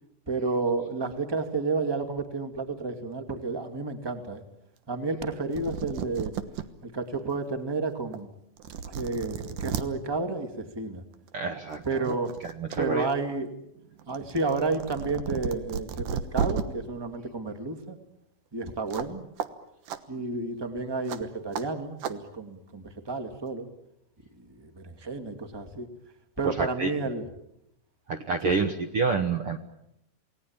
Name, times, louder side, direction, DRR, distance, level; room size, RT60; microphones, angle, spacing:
voice 1, 0.3-4.4 4.9-6.3 6.8-8.3 8.8-11.0 11.8-12.3 12.8-13.5 14.1-18.0 18.5-19.3 20.1-23.7 24.5-25.9 26.4-27.3 28.4-28.7, right 3 dB, 10° right, 7 dB, 1.8 m, -31 dB
sound 1, 5.3-5.4 5.5-6.6 7.2-7.3 8.1-8.2 8.6-9.8 11.1-11.3 11.7-12.8 13.1-16.6 18.9-19.1 19.4-19.5 19.9-20.0 21.1-21.2 21.5-21.6 22.0-22.1, right 7 dB, 80° right, 2.8 m, -33 dB
voice 2, 11.3-11.8 12.4-13.1 26.4-26.9 28.1-29.6, right 5 dB, 55° right, 7 dB, 1.7 m, -28 dB
28.5 x 19.5 x 8.8 m, 0.81 s
omnidirectional pair, 3.6 m